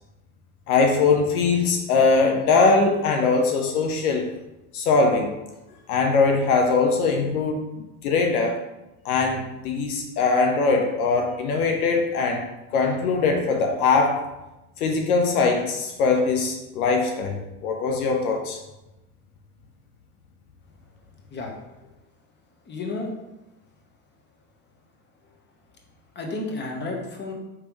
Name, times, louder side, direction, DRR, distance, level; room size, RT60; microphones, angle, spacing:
voice 1, 0.7-4.3 4.7-5.3 5.9-8.6 9.0-12.4 12.7-14.2 14.8-17.4 17.6-18.6, left 4 dB, 70° left, 2 dB, 0.8 m, -21 dB
voice 2, 22.6-23.1 26.1-27.3, left 3 dB, 25° left, 1 dB, 1.1 m, -31 dB
5.0 x 3.3 x 3.1 m, 0.97 s
hypercardioid pair, 85°, 45 cm